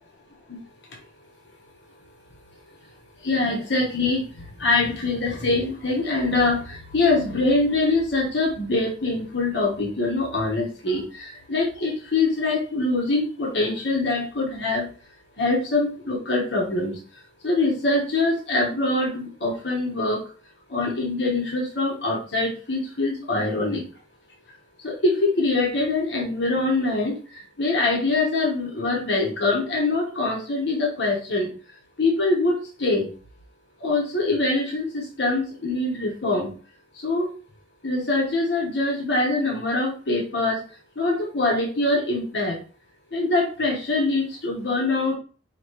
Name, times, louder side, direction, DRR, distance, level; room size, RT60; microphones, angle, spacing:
voice 1, 3.2-14.9 15.4-20.3 20.7-23.9 24.8-31.5 32.0-33.1 33.8-36.5 36.9-37.3 37.8-40.7 40.9-42.6 43.1-45.1, left 2 dB, 65° left, -2 dB, 1.2 m, -24 dB
5.1 x 2.9 x 3.1 m, 0.39 s
head